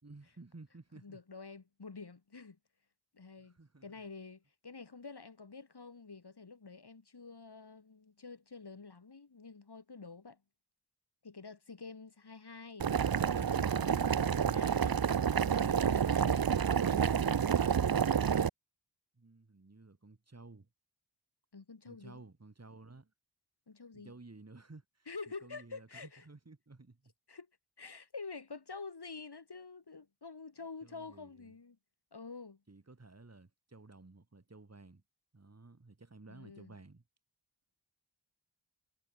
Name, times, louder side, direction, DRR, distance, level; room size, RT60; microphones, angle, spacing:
voice 1, 0.0-1.2 3.4-3.8 19.1-20.7 21.9-23.1 23.9-25.1 25.4-27.1 30.8-31.5 32.7-35.0 35.3-37.0, right 3 dB, 35° right, 4.0 m, -54 dB
voice 2, 0.9-2.6 3.1-10.4 11.2-12.9 13.3-17.5 21.5-22.2 23.7-24.1 25.1-26.2 27.3-27.5 27.8-31.8 32.1-32.6 36.3-36.8, left 4 dB, 65° left, 6.9 m, -48 dB
Boiling, 12.8-18.5, right 7 dB, 55° right, 0.8 m, -29 dB
wide cardioid pair, 70°, 42 cm